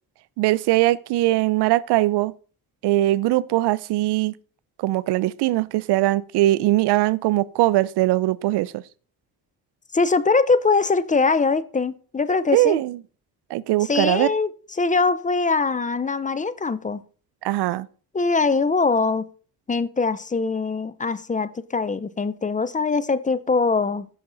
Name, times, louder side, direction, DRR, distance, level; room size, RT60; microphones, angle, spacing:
voice 1, 0.4-2.3 2.8-4.3 4.8-8.8 12.5-13.0 13.5-14.3 17.4-17.9, right 17 dB, 85° right, 0.6 m, -21 dB
voice 2, 9.9-12.8 13.9-14.5 14.8-17.0 18.1-19.3 19.7-24.1, left 4 dB, 20° left, 0.6 m, -22 dB
14.5 x 5.8 x 3.9 m
cardioid pair, 100°, 39 cm